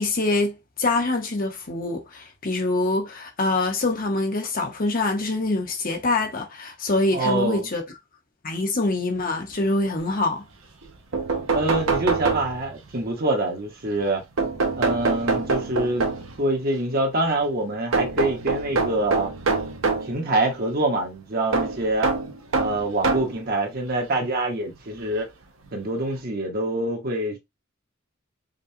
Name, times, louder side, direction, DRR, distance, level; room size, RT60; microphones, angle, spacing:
voice 1, 0.0-7.8 8.4-10.4, left 2 dB, 45° left, 1.0 m, -25 dB
voice 2, 7.1-7.7 11.5-14.2 14.8-16.1 16.4-19.3 20.0-22.1 22.6-25.3 25.7-27.4, right 2 dB, 50° right, 1.1 m, -25 dB
sound 1, 10.8-10.9 11.1-12.9 14.4-16.4 17.9-20.1 21.5-23.4 24.3-24.4 25.7-25.8 26.1-26.2, right 4 dB, 85° right, 0.9 m, -25 dB
5.2 x 2.4 x 2.7 m
head